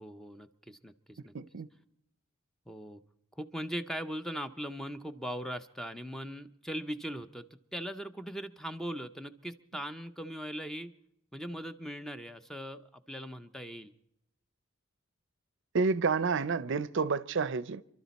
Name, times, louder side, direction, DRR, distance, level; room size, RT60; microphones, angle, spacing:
voice 1, 0.0-1.3 2.7-3.0 3.4-10.9 11.3-13.9, equal, ahead, 0.5 m, -40 dB
voice 2, 1.3-1.7 15.7-17.8, right 4 dB, 60° right, 0.5 m, -29 dB
27.5 x 12.0 x 4.1 m
head